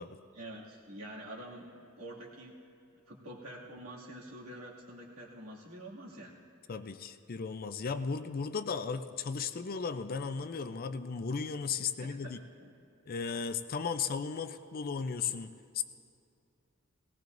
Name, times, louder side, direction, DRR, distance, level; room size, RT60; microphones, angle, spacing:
voice 1, 0.3-1.7 2.0-2.6 3.1-6.4 12.0-12.8, right 1 dB, 75° right, -4 dB, 2.3 m, -47 dB
voice 2, 6.7-12.4 13.1-15.8, left 5 dB, 45° left, 10 dB, 0.5 m, -35 dB
18.5 x 18.5 x 2.6 m, 2.5 s
head